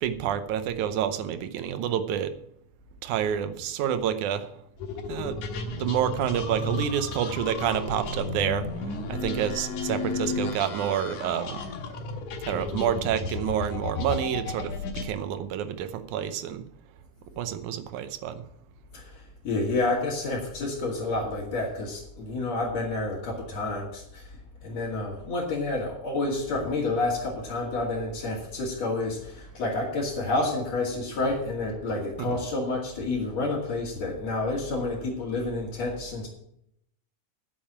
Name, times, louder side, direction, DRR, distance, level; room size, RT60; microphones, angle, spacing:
voice 1, 0.0-2.3 3.0-4.5 5.1-5.4 5.7-8.7 9.1-11.6 12.4-14.7 15.0-16.6 17.4-18.4 32.2-32.4, right 9 dB, 80° right, 10 dB, 2.3 m, -28 dB
sound 1, 4.8-15.1, left 3 dB, 80° left, 2.8 m, -33 dB
voice 2, 18.9-24.4 24.6-36.3, left 2 dB, 55° left, -6 dB, 3.4 m, -29 dB
9.6 x 7.4 x 8.6 m, 0.76 s
omnidirectional pair, 3.6 m